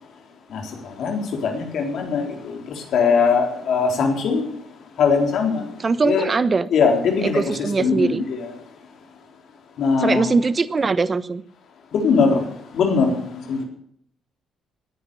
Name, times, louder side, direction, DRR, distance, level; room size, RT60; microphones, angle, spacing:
voice 1, 0.5-4.5 5.0-5.6 6.0-6.3 6.7-7.4 7.8-8.5 9.8-10.3 11.9-12.4 12.7-13.6, left 5 dB, 65° left, 3 dB, 4.0 m, -21 dB
voice 2, 5.8-6.7 7.3-8.2 10.0-11.4, right 4 dB, 35° right, 15 dB, 1.1 m, -21 dB
18.0 x 10.0 x 7.0 m, 0.66 s
hypercardioid pair, 50°, 0 cm